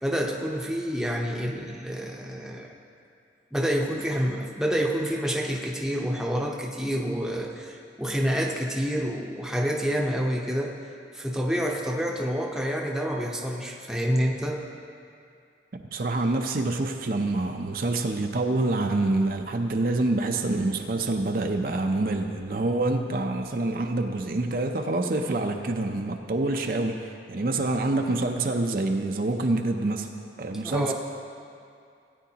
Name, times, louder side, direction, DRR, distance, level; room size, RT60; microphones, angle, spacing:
voice 1, 0.0-2.7 3.5-10.8 11.1-14.6 30.6-30.9, equal, 5° right, -1 dB, 0.7 m, -28 dB
voice 2, 15.9-30.1 30.4-30.9, right 2 dB, 50° right, 4 dB, 0.5 m, -26 dB
17.0 x 9.3 x 2.9 m, 2.4 s
head